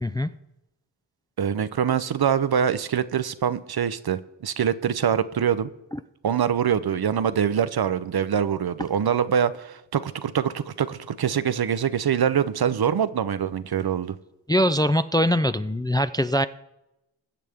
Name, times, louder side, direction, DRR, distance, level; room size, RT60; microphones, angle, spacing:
voice 1, 1.4-5.7 6.2-14.2, right 8 dB, 55° right, 0.7 m, -24 dB
voice 2, 14.5-16.4, equal, 10° left, 0.4 m, -22 dB
21.0 x 7.5 x 3.5 m
cardioid pair, 50°, 45 cm